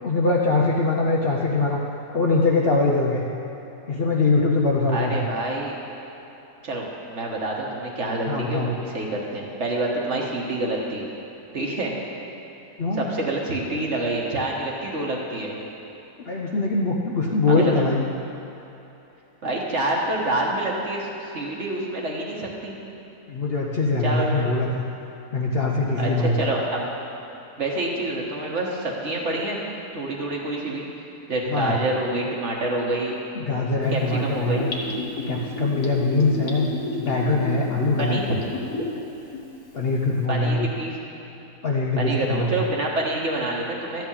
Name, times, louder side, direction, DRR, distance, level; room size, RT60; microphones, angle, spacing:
voice 1, 0.0-1.8 2.1-3.2 3.9-5.2 8.3-8.7 12.8-13.1 16.3-18.1 23.3-24.8 25.3-26.4 31.5-31.8 33.3-34.7 35.3-36.7 37.0-38.2 39.7-40.7 41.6-42.5, left 3 dB, 50° left, -2 dB, 0.8 m, -22 dB
voice 2, 4.9-5.8 6.6-11.0 11.5-11.9 13.0-15.6 17.5-17.8 19.4-22.8 24.0-24.5 26.0-26.9 27.6-29.6 29.9-30.9 31.3-33.1 33.9-34.6 38.0-38.3 40.3-40.9 42.0-44.1, right 2 dB, 50° right, -2 dB, 1.5 m, -27 dB
Gurgling / Bathtub (filling or washing), 33.8-39.0 39.3-39.4, left 2 dB, 65° left, 1.7 m, -30 dB
13.0 x 4.6 x 8.6 m, 3.0 s
omnidirectional pair, 1.7 m